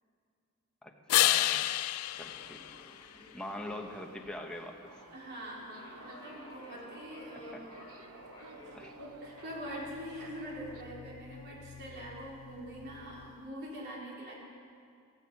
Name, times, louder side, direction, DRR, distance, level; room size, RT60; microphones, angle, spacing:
voice 1, 0.8-1.6 2.2-2.8 3.3-4.8 7.5-7.6 8.7-8.9, left 1 dB, 5° left, 1 dB, 1.1 m, -43 dB
sound 1, 1.1-3.7 9.4-13.4, left 14 dB, 85° left, 0.4 m, -33 dB
sound 2, 2.0-13.4, left 1 dB, 20° left, 3.8 m, -56 dB
Subway metro underground, 4.9-10.8, right 3 dB, 70° right, 1.0 m, -53 dB
voice 2, 5.1-7.8 8.5-14.3, equal, 50° right, -4 dB, 4.1 m, -44 dB
18.0 x 14.5 x 5.5 m, 2.3 s
head